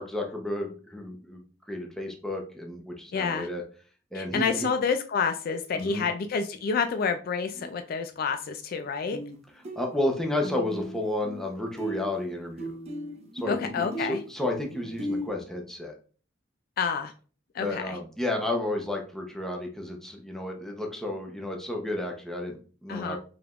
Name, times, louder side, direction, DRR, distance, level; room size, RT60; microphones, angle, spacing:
voice 1, 0.0-3.6 4.1-4.7 5.8-6.1 9.8-12.7 13.3-15.9 17.6-23.2, left 1 dB, ahead, 1 dB, 0.8 m, -32 dB
voice 2, 3.1-3.5 4.1-9.2 13.5-14.2 16.8-17.1 17.5-18.0 22.9-23.2, left 5 dB, 50° left, 8 dB, 0.3 m, -28 dB
sound 1, 7.5-7.7 9.1-9.4 9.6-11.5 11.8-15.3, right 1 dB, 35° right, 0.7 m, -37 dB
4.8 x 3.4 x 2.4 m, 0.38 s
head